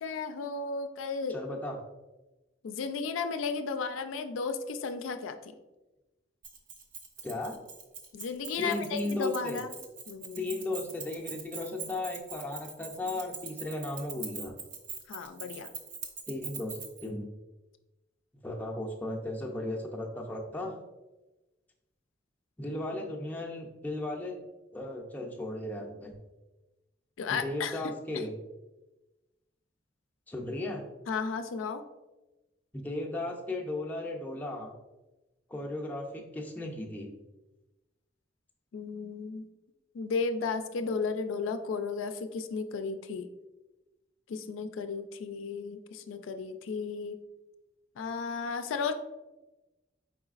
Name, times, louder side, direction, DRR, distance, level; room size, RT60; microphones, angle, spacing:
voice 1, 0.0-1.4 2.6-5.5 8.1-9.7 10.1-10.4 15.1-15.7 27.2-27.9 31.1-31.8 38.7-39.5 39.9-43.3 44.3-47.2 48.0-48.9, left 5 dB, 90° left, 8 dB, 0.4 m, -34 dB
voice 2, 1.3-1.8 7.2-7.6 8.6-9.6 10.4-14.5 16.3-17.3 18.4-20.8 22.6-24.4 24.7-26.1 27.3-28.3 30.3-30.9 32.7-34.7 35.5-37.1, left 2 dB, 10° left, -1 dB, 0.4 m, -36 dB
Keys jangling, 6.4-17.1, right 5 dB, 45° right, 0.6 m, -43 dB
4.7 x 3.9 x 2.4 m, 1.1 s
head